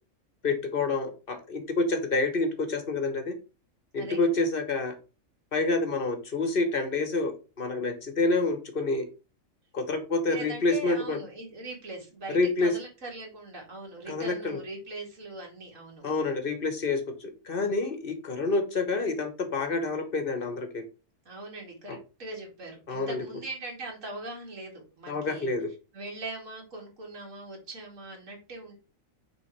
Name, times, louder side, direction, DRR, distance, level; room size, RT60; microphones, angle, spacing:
voice 1, 0.4-3.3 3.9-4.9 5.5-9.0 9.7-11.2 12.3-12.8 14.1-14.6 16.0-20.8 21.9-22.0 22.9-23.3 25.1-25.7, left 3 dB, 45° left, 7 dB, 1.2 m, -28 dB
voice 2, 4.0-4.4 10.3-16.0 21.3-25.5 25.9-28.7, right 2 dB, 65° right, -1 dB, 2.5 m, -41 dB
6.1 x 3.6 x 4.5 m, 0.32 s
omnidirectional pair, 1.4 m